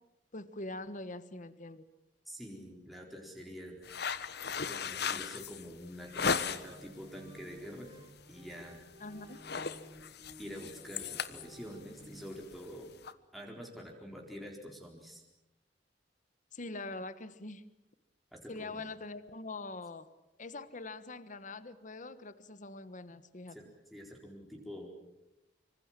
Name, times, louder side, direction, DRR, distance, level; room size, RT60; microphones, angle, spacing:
voice 1, 0.3-1.8 9.0-9.4 16.5-17.6 18.5-20.1 20.4-23.6, left 2 dB, 45° left, 13 dB, 1.3 m, -43 dB
voice 2, 2.2-3.9 4.7-7.9 8.3-8.8 10.4-12.9 13.3-15.2 18.3-18.8 23.5-24.9, equal, ahead, -1 dB, 4.4 m, -46 dB
sound 1, 3.8-6.9 7.3-7.7 8.0-8.2 8.5-8.9 9.2-13.1, left 6 dB, 60° left, 1.3 m, -36 dB
sound 2, 6.1-12.4, equal, 25° right, 3.6 m, -55 dB
26.0 x 25.5 x 7.5 m, 0.93 s
head